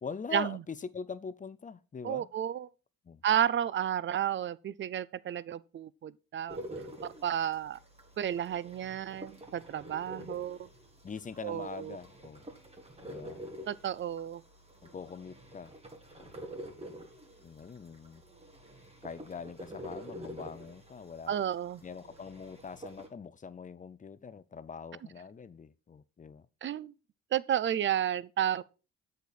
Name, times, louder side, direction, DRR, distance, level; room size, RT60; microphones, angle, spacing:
voice 1, 0.0-2.3 3.0-3.2 10.2-10.5 11.0-12.4 13.0-13.4 14.8-15.7 16.2-16.3 17.4-18.2 19.0-21.3 21.8-26.5, left 5 dB, 25° left, 0.6 m, -43 dB
voice 2, 2.0-2.7 3.2-6.6 7.2-7.8 8.2-10.7 11.4-12.0 13.7-14.4 21.3-21.8 26.6-26.9 27.3-28.6, right 10 dB, 40° right, 0.5 m, -32 dB
sound 1, 6.5-23.1, right 1 dB, 20° right, 2.0 m, -48 dB
8.1 x 6.6 x 4.1 m
cardioid pair, 90°, 30 cm